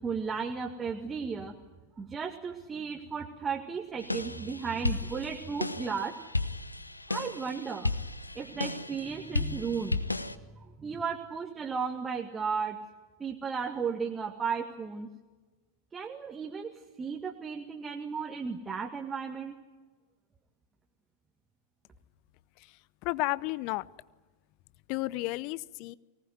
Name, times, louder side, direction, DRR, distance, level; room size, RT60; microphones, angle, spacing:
voice 1, 0.0-1.6 2.0-6.2 7.1-7.9 8.3-12.8 13.2-15.1 15.9-19.5, right 6 dB, 15° right, 1 dB, 2.0 m, -35 dB
sound 1, 4.0-10.3, left 2 dB, 85° left, 0.9 m, -34 dB
voice 2, 23.0-23.9 24.9-26.0, left 20 dB, 45° left, 21 dB, 0.7 m, -32 dB
24.5 x 19.0 x 9.6 m, 1.3 s
figure-of-eight pair, 90°, 0 cm